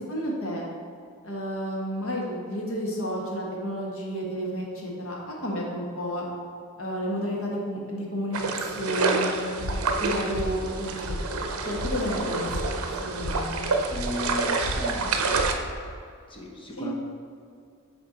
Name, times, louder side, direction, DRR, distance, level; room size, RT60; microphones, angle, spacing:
voice 1, 0.1-0.7 1.2-6.2 6.8-9.5 10.0-13.7 16.8-16.9, equal, 65° left, -3 dB, 1.5 m, -31 dB
sound 1, 8.3-15.5, right 3 dB, 70° right, 0.6 m, -28 dB
sound 2, 9.5-15.9, left 1 dB, 85° left, 0.7 m, -35 dB
voice 2, 13.9-15.3 16.3-17.0, left 2 dB, 25° left, -1 dB, 0.9 m, -36 dB
6.6 x 4.4 x 4.1 m, 2.3 s
head